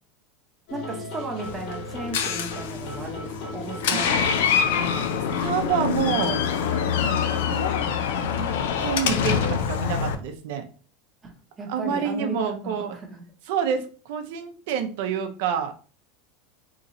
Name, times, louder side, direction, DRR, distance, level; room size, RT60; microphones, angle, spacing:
sound 1, 0.7-9.5, left 2 dB, 55° left, 1.3 m, -37 dB
voice 1, 0.7-4.6 7.0-7.2 11.2-11.3 11.6-13.1, right 2 dB, 15° right, 1 dB, 0.8 m, -35 dB
Door, 1.4-10.1, left 7 dB, 85° left, 0.4 m, -25 dB
voice 2, 5.4-6.4 7.3-7.7 8.4-8.5 8.8-10.7 11.7-12.9 13.5-15.7, right 7 dB, 65° right, 6 dB, 0.6 m, -27 dB
3.9 x 2.9 x 2.6 m, 0.39 s
supercardioid pair, 160°, 0 cm